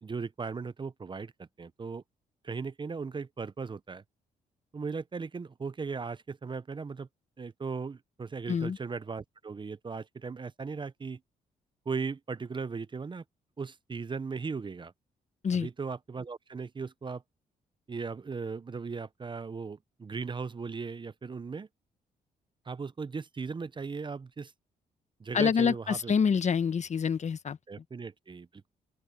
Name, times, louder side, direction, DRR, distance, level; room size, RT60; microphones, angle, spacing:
voice 1, 0.0-2.0 2.4-4.0 4.7-7.1 7.4-11.2 11.9-13.2 13.6-14.9 15.5-17.2 17.9-21.7 22.7-24.5 25.2-26.1 27.7-28.7, right 5 dB, 30° right, 0.7 m, -37 dB
voice 2, 8.5-8.8 15.4-15.7 25.3-27.6, left 6 dB, 50° left, 1.4 m, -27 dB
open air
supercardioid pair, 65°, 16 cm